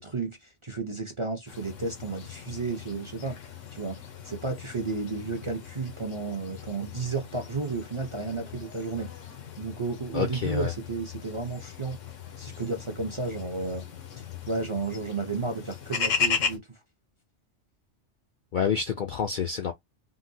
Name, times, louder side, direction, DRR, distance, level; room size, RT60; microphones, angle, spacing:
voice 1, 0.0-4.0 4.2-9.1 9.6-12.0 12.4-13.9 14.2-16.8, right 4 dB, 35° right, 0.5 m, -33 dB
sound 1, 1.5-16.6, left 6 dB, 80° left, 1.1 m, -37 dB
voice 2, 10.1-10.7 18.5-19.7, left 7 dB, 60° left, 0.5 m, -28 dB
3.7 x 2.2 x 2.7 m
omnidirectional pair, 1.3 m